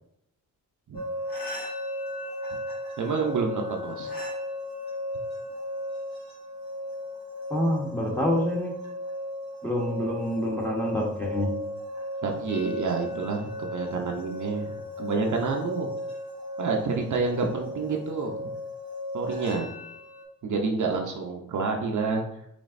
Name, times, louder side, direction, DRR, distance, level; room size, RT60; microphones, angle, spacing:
Singing Bowl long without reverb, 0.9-20.2, left 1 dB, 80° left, 1.5 m, -36 dB
voice 1, 3.0-4.1 12.2-15.9 16.6-18.5 19.1-19.7 20.4-22.2, right 4 dB, 60° right, 1 dB, 0.7 m, -28 dB
voice 2, 7.5-8.7 9.6-11.5, equal, 5° left, -2 dB, 1.0 m, -27 dB
5.1 x 3.3 x 2.6 m, 0.78 s
cardioid pair, 95°, 35 cm